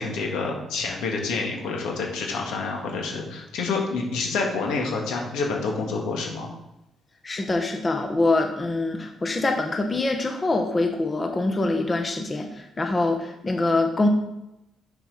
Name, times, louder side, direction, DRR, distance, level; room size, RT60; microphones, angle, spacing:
voice 1, 0.0-6.5, left 4 dB, 90° left, 0 dB, 2.0 m, -28 dB
voice 2, 7.2-14.1, left 2 dB, 30° left, 4 dB, 1.1 m, -24 dB
6.7 x 5.9 x 5.0 m, 0.89 s
cardioid pair, 90°, 0 cm